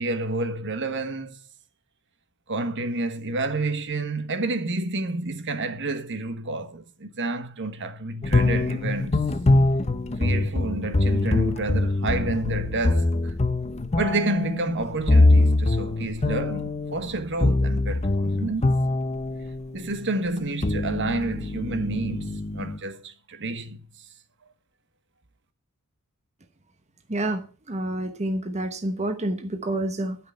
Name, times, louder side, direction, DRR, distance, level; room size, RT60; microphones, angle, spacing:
voice 1, 0.0-1.4 2.5-9.2 10.2-13.3 13.9-18.7 19.7-23.8, right 2 dB, 55° right, 1.3 m, -29 dB
sound 1, 8.2-19.7 20.4-22.8, left 2 dB, 30° left, 0.7 m, -23 dB
voice 2, 27.1-27.4 27.7-30.2, right 1 dB, 30° right, 1.1 m, -28 dB
12.0 x 6.2 x 8.0 m
head